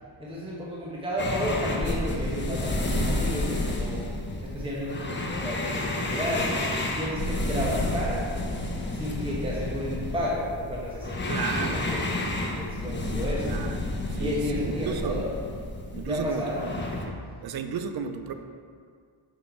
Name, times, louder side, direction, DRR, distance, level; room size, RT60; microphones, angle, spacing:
voice 1, 0.2-4.0 4.4-8.2 9.0-11.5 11.7-12.2 12.5-13.6 14.2-15.3 16.0-16.6, equal, 10° right, -6 dB, 1.1 m, -32 dB
sound 1, 1.2-17.1, left 1 dB, 20° left, 0.9 m, -30 dB
voice 2, 11.3-11.9 13.4-13.8 14.1-15.3 15.9-17.2 17.4-18.3, right 7 dB, 50° right, 8 dB, 0.6 m, -33 dB
6.2 x 6.0 x 4.4 m, 2.1 s
wide cardioid pair, 125°, 49 cm